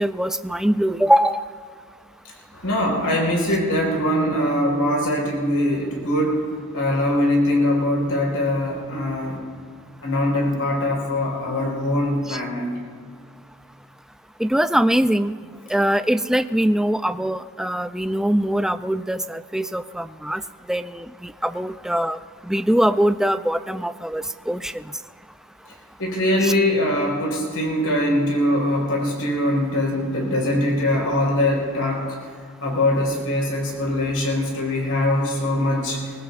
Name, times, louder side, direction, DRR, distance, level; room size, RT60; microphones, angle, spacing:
voice 1, 0.0-1.4 12.3-12.4 14.4-15.3 15.7-20.4 20.7-22.2 22.4-24.8 26.4-26.5, equal, ahead, 11 dB, 0.3 m, -22 dB
voice 2, 2.5-6.4 6.7-9.4 10.0-12.7 26.0-32.2 32.6-36.1, left 1 dB, 85° left, -2 dB, 4.5 m, -22 dB
24.0 x 20.0 x 2.5 m, 2.1 s
head